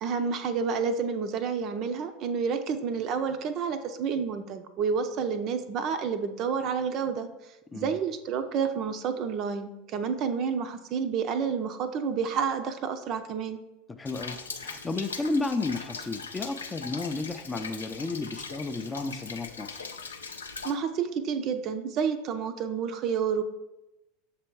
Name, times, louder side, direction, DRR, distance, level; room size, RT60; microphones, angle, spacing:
voice 1, 0.0-7.3 7.7-13.6 20.6-23.4, right 6 dB, 45° right, 8 dB, 0.5 m, -29 dB
voice 2, 13.9-19.9, left 3 dB, 15° left, 8 dB, 0.4 m, -33 dB
Rain, 14.1-20.7, left 5 dB, 80° left, 0.5 m, -40 dB
6.8 x 3.3 x 4.5 m, 0.96 s
figure-of-eight pair, 80°, 0 cm